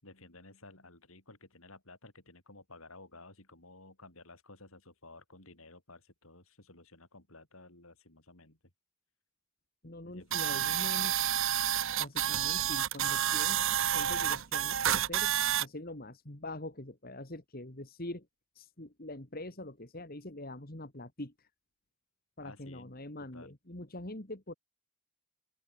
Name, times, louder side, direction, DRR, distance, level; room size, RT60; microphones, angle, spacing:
voice 1, 0.0-8.6 10.0-11.3 22.4-22.9 23.3-23.5, left 2 dB, 70° left, 6.7 m, -54 dB
voice 2, 9.8-11.1 12.0-13.6 13.9-15.3 15.6-18.3 18.6-21.5 22.4-24.5, left 1 dB, 40° left, 2.3 m, -44 dB
sound 1, 10.3-15.7, right 10 dB, 60° right, 0.8 m, -29 dB
open air
head